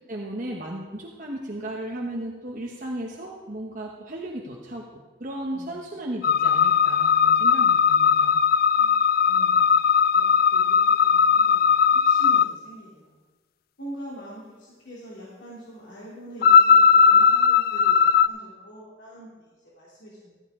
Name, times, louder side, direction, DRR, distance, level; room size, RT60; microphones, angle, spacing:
voice 1, 0.0-8.4, right 1 dB, 45° right, -1 dB, 1.1 m, -35 dB
voice 2, 5.5-5.8 8.8-10.2 10.5-13.2 13.8-20.3, equal, 80° left, -7 dB, 2.8 m, -44 dB
sound 1, 6.2-12.5 16.4-18.3, left 6 dB, 50° left, 0.3 m, -18 dB
14.5 x 13.5 x 3.7 m, 1.3 s
head